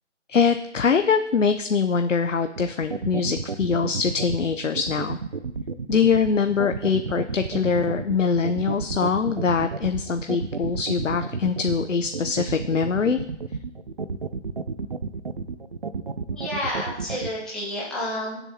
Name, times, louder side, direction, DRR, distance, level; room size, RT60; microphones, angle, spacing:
voice 1, 0.3-5.2 5.9-13.2, left 5 dB, 85° left, 8 dB, 0.7 m, -23 dB
sound 1, 2.6-17.3, right 4 dB, 45° right, 0.5 m, -31 dB
voice 2, 16.3-18.4, left 1 dB, ahead, -9 dB, 1.5 m, -30 dB
15.0 x 7.0 x 2.8 m, 0.82 s
figure-of-eight pair, 160°, 36 cm